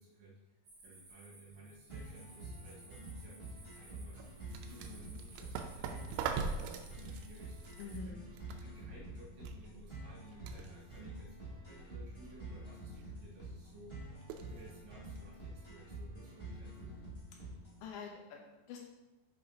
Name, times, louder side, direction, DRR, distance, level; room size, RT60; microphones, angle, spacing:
voice 1, 0.0-4.4 4.7-7.8 8.1-8.2 8.6-14.1 14.5-17.0, right 2 dB, 70° right, -5 dB, 3.7 m, -57 dB
sound 1, 0.6-8.0, right 2 dB, 40° right, 3.1 m, -59 dB
sound 2, 1.9-17.9, right 2 dB, 45° left, 0.3 m, -48 dB
sound 3, 3.6-17.6, right 5 dB, 85° right, 2.6 m, -46 dB
voice 2, 7.8-8.2 17.8-18.8, left 5 dB, 75° left, 0 dB, 3.0 m, -46 dB
7.5 x 7.2 x 2.8 m, 1.0 s
omnidirectional pair, 5.7 m